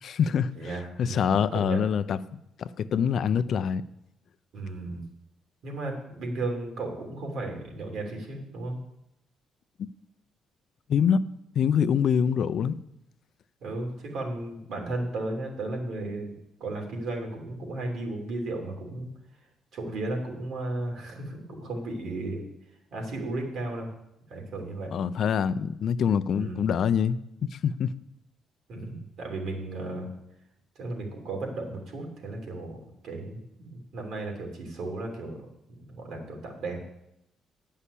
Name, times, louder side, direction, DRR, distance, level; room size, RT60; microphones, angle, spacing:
voice 1, 0.0-3.8 10.9-11.2 11.6-12.8 24.9-27.9, left 7 dB, 65° left, 0.4 m, -25 dB
voice 2, 0.6-1.8 4.5-5.0 5.6-8.8 13.6-16.3 16.6-19.1 19.7-22.4 22.9-23.9 24.3-24.9 26.3-26.6 28.7-30.1 30.8-35.5 35.8-36.8, right 2 dB, 75° right, 2.9 m, -34 dB
9.8 x 5.6 x 8.4 m
cardioid pair, 90°, 0 cm